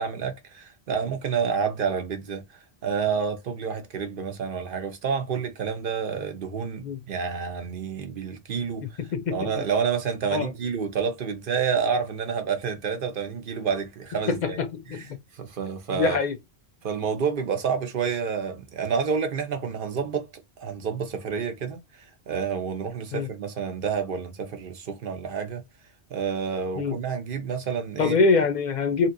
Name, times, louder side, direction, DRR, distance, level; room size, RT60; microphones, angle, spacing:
voice 1, 0.0-2.4 2.8-8.9 9.3-14.6 14.9-15.0 15.4-16.2 16.8-20.3 20.6-21.8 22.3-25.6 26.1-28.2, right 6 dB, 60° right, 0.9 m, -29 dB
voice 2, 9.0-9.5 10.3-10.5 14.3-15.0 15.9-16.4 23.1-23.3 26.8-26.9 28.0-29.1, left 4 dB, 50° left, 0.6 m, -24 dB
2.9 x 2.8 x 2.5 m
omnidirectional pair, 1.1 m